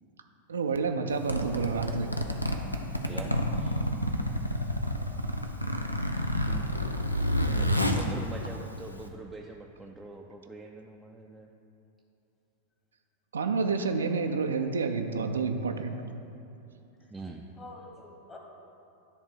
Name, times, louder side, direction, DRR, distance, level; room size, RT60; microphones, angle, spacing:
voice 1, 0.5-2.1 13.3-16.0, right 4 dB, 70° right, 6 dB, 0.5 m, -29 dB
Zipper (clothing), 1.1-9.1, equal, 85° left, 0.5 m, -29 dB
voice 2, 7.5-11.5 17.1-17.4, right 2 dB, 10° right, -1 dB, 0.5 m, -42 dB
voice 3, 17.6-18.4, left 2 dB, 20° left, 0 dB, 1.3 m, -49 dB
10.5 x 3.6 x 6.0 m, 2.9 s
figure-of-eight pair, 90°, 0 cm